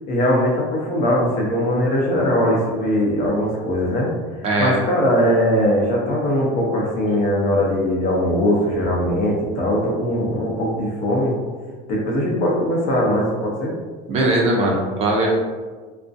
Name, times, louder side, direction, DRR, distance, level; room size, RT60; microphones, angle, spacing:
voice 1, 0.1-4.1 4.6-11.3 11.9-13.7, equal, 50° left, -3 dB, 0.7 m, -20 dB
voice 2, 4.4-4.8 14.1-15.3, right 1 dB, 35° right, -2 dB, 0.4 m, -19 dB
2.4 x 2.1 x 2.5 m, 1.4 s
cardioid pair, 150°, 19 cm